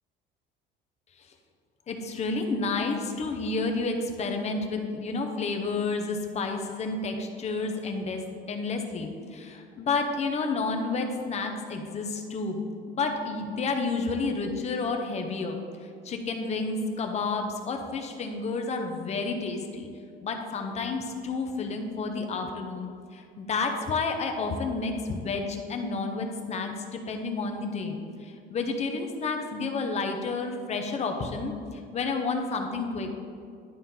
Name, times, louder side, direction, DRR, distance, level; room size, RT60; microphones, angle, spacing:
voice 1, 1.9-8.2 8.5-12.6 12.9-19.9 20.2-27.9 28.2-33.1, left 3 dB, 35° left, 4 dB, 0.7 m, -30 dB
11.0 x 4.2 x 3.7 m, 2.3 s
cardioid pair, 155°, 20 cm